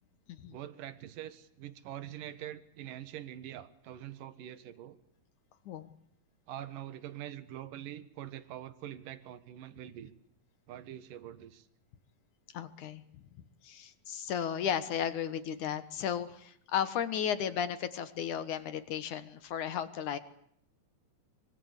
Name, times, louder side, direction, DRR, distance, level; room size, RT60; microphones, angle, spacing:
voice 1, 0.5-5.0 6.5-10.1 10.7-11.7, right 11 dB, 75° right, 13 dB, 3.1 m, -44 dB
voice 2, 12.5-13.2 13.6-20.2, left 9 dB, 65° left, 12 dB, 2.6 m, -34 dB
25.0 x 24.5 x 8.4 m, 0.68 s
omnidirectional pair, 3.9 m